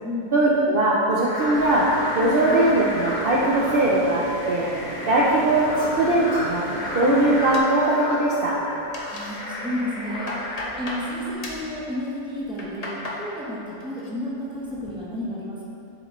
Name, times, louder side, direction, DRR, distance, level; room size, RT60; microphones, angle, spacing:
voice 1, 0.3-4.7 5.1-6.6 6.9-8.6, right 1 dB, 85° right, -5 dB, 0.4 m, -20 dB
sound 1, 1.2-11.3, left 1 dB, 80° left, 1.5 m, -33 dB
sound 2, 1.5-7.6, right 2 dB, 50° right, 0.7 m, -37 dB
sound 3, 7.5-8.4 8.7-9.4 9.8-11.1 11.4-11.7 12.3-13.2 13.6-14.1 14.5-14.9, left 1 dB, 55° left, 0.4 m, -36 dB
voice 2, 9.0-15.6, left 1 dB, 5° right, -7 dB, 0.5 m, -32 dB
7.6 x 4.8 x 3.0 m, 2.8 s
omnidirectional pair, 1.8 m